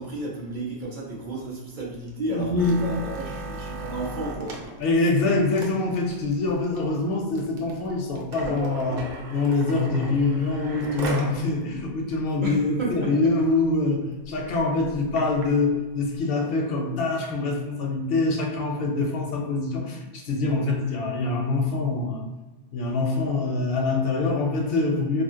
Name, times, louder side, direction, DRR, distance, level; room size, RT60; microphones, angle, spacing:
voice 1, 0.0-4.7 12.4-13.3, right 2 dB, 50° right, -4 dB, 0.7 m, -33 dB
voice 2, 2.3-2.8 4.8-22.3 22.7-25.2, left 3 dB, 60° left, 1 dB, 0.6 m, -25 dB
sound 1, 2.6-11.3 11.8-11.9 12.2-12.5 12.9-13.0 13.3-13.5 14.2-15.5 16.2-16.3, right 2 dB, 85° right, 1.0 m, -36 dB
2.6 x 2.4 x 2.7 m, 1.2 s
omnidirectional pair, 1.3 m